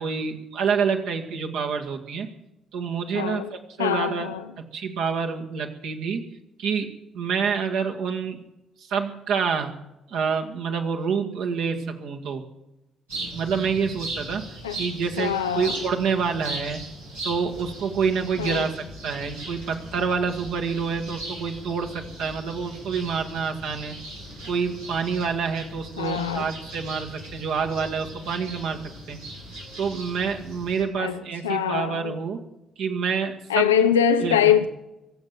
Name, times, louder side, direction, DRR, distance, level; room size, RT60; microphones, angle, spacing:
voice 1, 0.0-2.3 2.7-4.3 4.6-6.2 6.6-8.4 8.8-9.7 10.1-12.4 13.3-14.5 14.8-16.8 17.2-18.8 19.0-24.0 24.5-28.8 29.1-29.2 29.8-32.4 32.8-33.7 34.2-34.5, right 6 dB, 65° right, 2.0 m, -27 dB
voice 2, 3.1-4.5 14.6-14.8 15.2-15.8 18.4-18.7 26.0-26.5 31.0-32.1 33.5-34.7, left 9 dB, 80° left, 0.5 m, -23 dB
sound 1, 13.1-30.8, right 1 dB, 90° right, 7.6 m, -38 dB
24.0 x 8.1 x 7.5 m
figure-of-eight pair, 45°, 0 cm